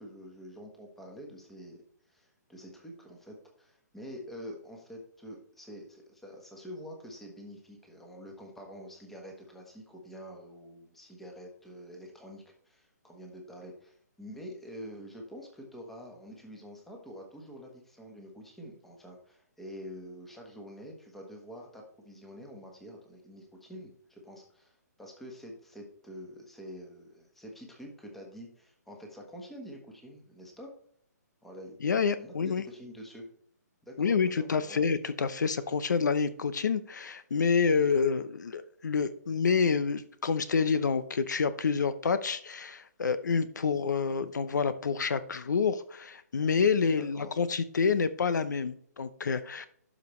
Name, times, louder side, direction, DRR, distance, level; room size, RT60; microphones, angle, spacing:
voice 1, 0.0-30.7 31.4-33.2 33.9-34.8 47.0-47.4, equal, ahead, 0 dB, 1.2 m, -47 dB
voice 2, 31.8-32.6 34.0-49.7, left 5 dB, 85° left, 13 dB, 0.8 m, -28 dB
12.0 x 5.1 x 3.1 m, 0.62 s
hypercardioid pair, 170°, 10 cm